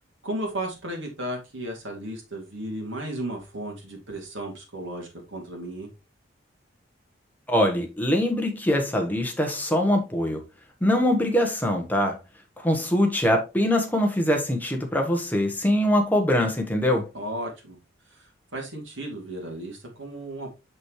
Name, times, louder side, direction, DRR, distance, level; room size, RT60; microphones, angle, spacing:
voice 1, 0.2-5.9 17.1-17.8 18.1-20.5, right 1 dB, 75° right, 2.4 m, -34 dB
voice 2, 7.5-10.4 10.8-12.2 12.6-17.1, left 1 dB, 10° left, 1.1 m, -23 dB
6.3 x 6.0 x 3.1 m
head